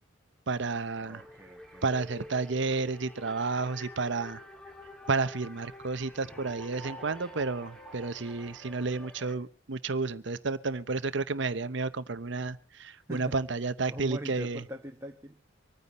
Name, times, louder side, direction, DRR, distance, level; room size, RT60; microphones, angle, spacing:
sound 1, 0.5-9.3, equal, 5° left, 1.7 m, -48 dB
voice 1, 0.5-1.2 1.8-4.4 5.1-14.6, right 4 dB, 60° right, 14 dB, 0.7 m, -31 dB
voice 2, 1.0-1.8 13.1-13.4 13.9-15.4, right 1 dB, 15° right, 2 dB, 1.2 m, -42 dB
25.5 x 9.7 x 4.1 m, 0.38 s
head